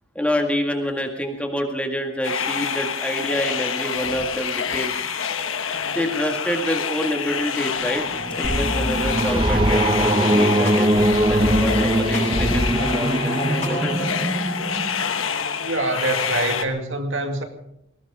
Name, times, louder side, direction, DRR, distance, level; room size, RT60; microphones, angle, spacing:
voice 1, 0.2-4.9 5.9-8.0 8.4-14.1 17.3-17.4, equal, 5° left, 3 dB, 1.9 m, -27 dB
sound 1, 2.2-16.7, left 6 dB, 90° left, 1.4 m, -27 dB
sound 2, 7.8-15.2, right 1 dB, 25° right, 0.9 m, -22 dB
sound 3, 8.4-10.0 10.7-12.9 13.2-14.2, equal, 35° left, 6.1 m, -27 dB
voice 2, 15.6-17.4, right 2 dB, 70° right, 5 dB, 2.2 m, -25 dB
19.5 x 18.0 x 3.7 m, 0.81 s
head